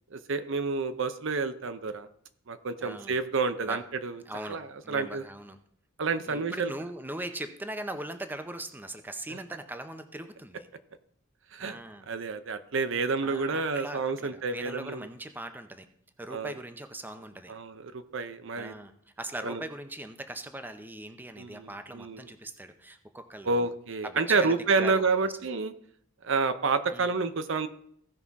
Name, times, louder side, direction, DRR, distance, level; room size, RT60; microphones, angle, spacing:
voice 1, 0.1-2.1 2.5-5.2 6.0-6.7 9.3-9.4 11.5-11.8 12.1-15.1 16.3-16.5 17.5-18.7 19.4-19.6 21.4-22.2 23.4-25.7 26.2-27.7, right 4 dB, 65° right, 10 dB, 0.7 m, -29 dB
voice 2, 2.8-3.2 3.6-3.8 4.3-5.6 6.3-10.7 11.6-12.1 13.2-15.9 16.2-17.5 18.5-18.9 19.2-23.7 24.0-25.0 26.9-27.1, right 1 dB, 10° right, 8 dB, 0.6 m, -40 dB
16.0 x 5.6 x 3.6 m, 0.66 s
head